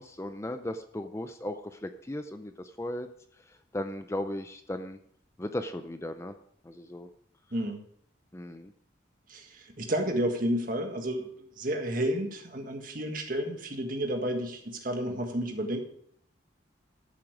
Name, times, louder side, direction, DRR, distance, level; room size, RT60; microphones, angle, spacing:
voice 1, 0.0-3.1 3.7-5.0 5.4-6.3 6.6-7.1 8.3-8.7, left 1 dB, 15° left, 8 dB, 0.5 m, -36 dB
voice 2, 7.5-7.8 9.3-15.8, equal, 45° right, 4 dB, 1.7 m, -31 dB
12.5 x 7.4 x 5.0 m, 0.66 s
head